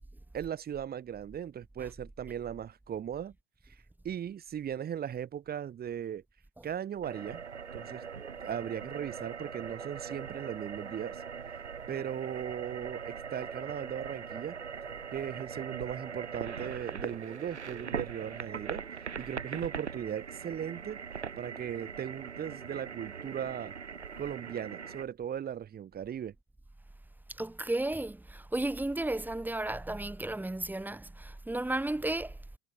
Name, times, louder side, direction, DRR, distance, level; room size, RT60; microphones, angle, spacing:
voice 1, 0.3-3.3 3.7-3.8 4.0-6.2 6.6-7.4 7.7-8.0 8.4-11.2 11.9-14.6 15.1-18.8 19.2-21.0 21.4-23.7 24.2-26.3, right 9 dB, 30° right, 7.2 m, -38 dB
sound 1, 7.0-25.0, right 6 dB, 85° right, 1.6 m, -41 dB
voice 2, 27.4-32.4, right 2 dB, 5° right, 5.7 m, -34 dB
figure-of-eight pair, 95°, 33 cm